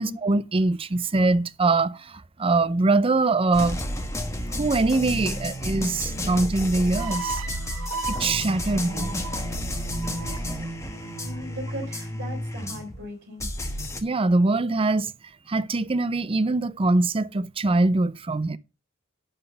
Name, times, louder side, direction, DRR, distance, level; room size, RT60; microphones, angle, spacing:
voice 1, 0.0-3.8 4.6-7.4 8.1-9.1 14.0-15.1 15.5-18.6, right 3 dB, 25° right, 0.5 m, -23 dB
sound 1, 3.5-13.1 13.4-14.0, left 1 dB, 15° left, 1.2 m, -31 dB
sound 2, 6.9-12.2, right 3 dB, 90° right, 1.1 m, -35 dB
voice 2, 8.7-9.2 9.9-10.8 11.1-13.6, equal, 60° right, 4.0 m, -39 dB
11.0 x 4.0 x 6.7 m
head